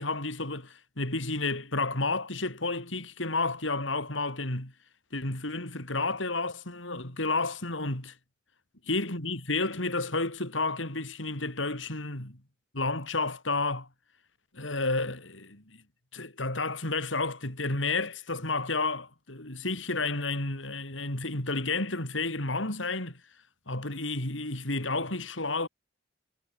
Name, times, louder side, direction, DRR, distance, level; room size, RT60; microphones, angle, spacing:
voice 1, 0.0-4.7 5.1-8.1 8.9-12.4 12.7-13.9 14.5-15.6 16.1-23.2 23.7-25.7, left 3 dB, 90° left, 5.6 m, -31 dB
head